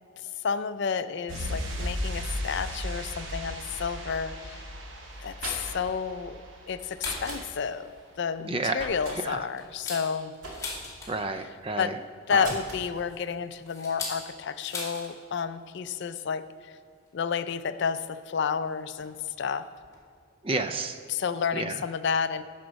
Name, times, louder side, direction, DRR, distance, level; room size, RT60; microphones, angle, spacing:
voice 1, 0.4-4.6 5.2-6.4 6.7-7.9 8.2-10.3 11.8-11.9 12.3-16.8 17.1-19.6 21.1-22.4, left 6 dB, 55° left, 12 dB, 0.4 m, -30 dB
sound 1, 1.3-7.8 8.0-8.2, equal, 60° right, 1.1 m, -36 dB
sound 2, 5.1-6.0 7.0-7.4 8.7-9.2 10.4-10.9 12.4-12.9, right 1 dB, 85° right, 2.1 m, -39 dB
sound 3, 6.8-7.5 7.9-8.0 8.4-8.6 9.1-11.4 12.6-15.1 15.4-15.5 15.8-16.1 17.1-17.2 18.1-18.2 19.0-19.2 19.5-19.6 19.8-20.0, left 3 dB, 15° left, 1.8 m, -39 dB
voice 2, 8.5-8.9 9.2-9.4 11.1-11.9 12.3-12.4 20.4-21.0 21.5-21.8, right 3 dB, 25° right, 8 dB, 0.4 m, -30 dB
10.5 x 5.1 x 6.3 m, 2.2 s
head